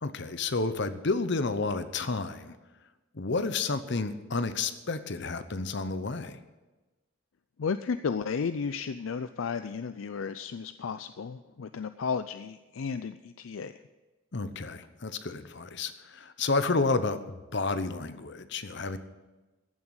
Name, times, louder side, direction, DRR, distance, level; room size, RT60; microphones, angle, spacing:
voice 1, 0.0-2.6 3.1-6.4 14.3-19.0, left 3 dB, 60° left, 11 dB, 0.9 m, -31 dB
voice 2, 7.6-13.8, left 5 dB, 75° left, 11 dB, 0.4 m, -33 dB
15.0 x 7.3 x 8.1 m, 1.2 s
head